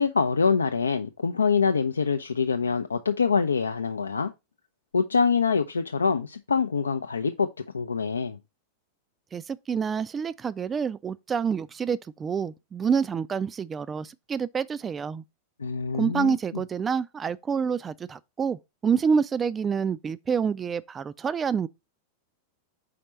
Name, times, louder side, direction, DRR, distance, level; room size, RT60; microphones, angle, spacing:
voice 1, 0.0-4.3 4.9-7.5 7.7-8.4 15.6-16.6, left 5 dB, 75° left, 0.4 m, -25 dB
voice 2, 9.3-15.2 15.9-21.7, right 6 dB, 20° right, 0.3 m, -27 dB
5.0 x 4.2 x 4.4 m
figure-of-eight pair, 90°, 0 cm